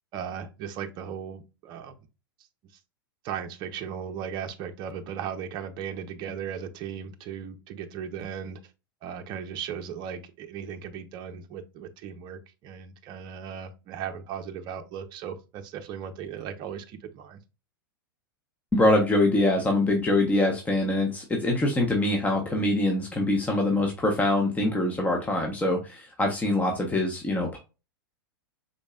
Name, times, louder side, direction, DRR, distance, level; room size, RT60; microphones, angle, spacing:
voice 1, 0.1-1.9 3.2-8.6 9.0-17.4, right 8 dB, 40° right, 0.7 m, -37 dB
voice 2, 18.7-27.6, left 1 dB, 15° left, 1.1 m, -24 dB
5.2 x 3.9 x 2.4 m
figure-of-eight pair, 95°, 12 cm